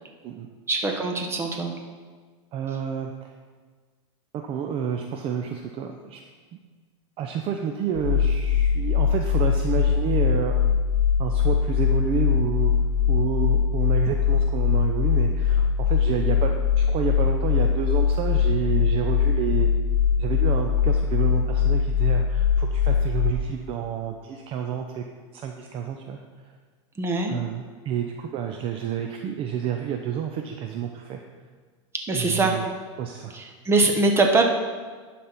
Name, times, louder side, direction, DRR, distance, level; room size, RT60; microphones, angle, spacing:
voice 1, 0.7-1.7 27.0-27.3 32.1-32.5 33.3-34.4, right 3 dB, 15° right, 2 dB, 1.1 m, -22 dB
voice 2, 2.5-3.3 4.4-6.2 7.2-10.6 11.2-12.7 13.1-19.7 20.2-25.0 25.3-26.2 26.4-26.5 27.3-31.2 32.1-32.6 33.0-33.4, right 8 dB, 35° right, 4 dB, 0.6 m, -29 dB
sound 1, 7.9-23.3, left 7 dB, 55° left, 1.0 m, -21 dB
11.0 x 4.2 x 5.8 m, 1.5 s
supercardioid pair, 135°, 16 cm